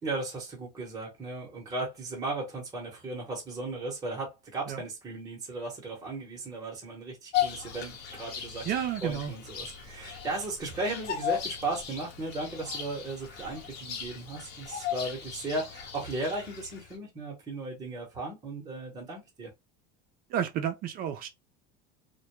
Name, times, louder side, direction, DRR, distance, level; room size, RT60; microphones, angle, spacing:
voice 1, 0.0-8.7 9.0-19.5, right 2 dB, 20° right, 0.9 m, -36 dB
Bird vocalization bird call bird song, 7.3-16.9, left 10 dB, 50° left, 0.9 m, -37 dB
voice 2, 8.6-9.3 20.3-21.3, right 9 dB, 45° right, 0.4 m, -31 dB
2.2 x 2.1 x 2.9 m
cardioid pair, 135°, 21 cm